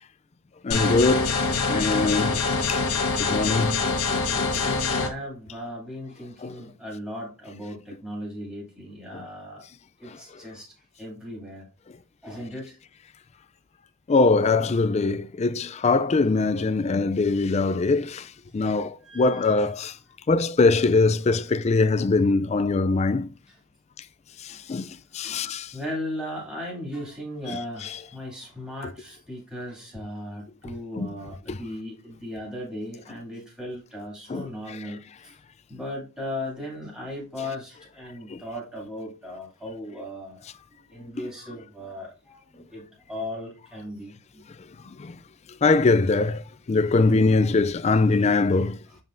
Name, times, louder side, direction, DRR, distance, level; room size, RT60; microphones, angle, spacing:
voice 1, 0.6-1.3 1.7-2.3 2.7-2.8 3.2-3.8 6.4-6.5 14.1-18.2 18.5-19.9 20.3-23.3 24.7-24.9 25.1-25.7 31.0-31.1 31.5-31.6 34.3-34.4 38.3-38.4 45.0-45.2 45.6-46.4 46.7-48.8, left 3 dB, 30° left, 0.3 m, -22 dB
sound 1, 0.7-5.1, left 4 dB, 80° left, 1.2 m, -25 dB
voice 2, 4.2-9.6 10.0-11.7 12.2-12.8 19.0-19.7 23.5-23.6 24.5-24.6 25.2-35.0 35.7-40.4 40.7-44.1 48.9-49.0, left 1 dB, 5° right, 2.5 m, -37 dB
7.3 x 5.3 x 2.6 m
head